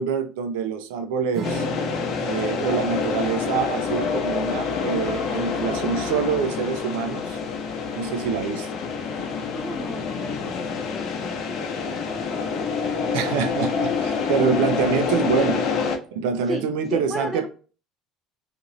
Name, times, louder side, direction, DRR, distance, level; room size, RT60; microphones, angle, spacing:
voice 1, 0.0-1.6 2.2-7.4 8.0-8.7 13.1-15.6 16.1-17.5, right 6 dB, 85° right, 0.5 m, -25 dB
Strum, 1.3-8.2, right 4 dB, 40° right, 0.8 m, -40 dB
sound 1, 1.4-16.0, left 5 dB, 60° left, 0.6 m, -27 dB
voice 2, 9.5-13.0 16.4-17.5, left 1 dB, ahead, 0.4 m, -35 dB
2.6 x 2.5 x 2.9 m
supercardioid pair, 110°, 0 cm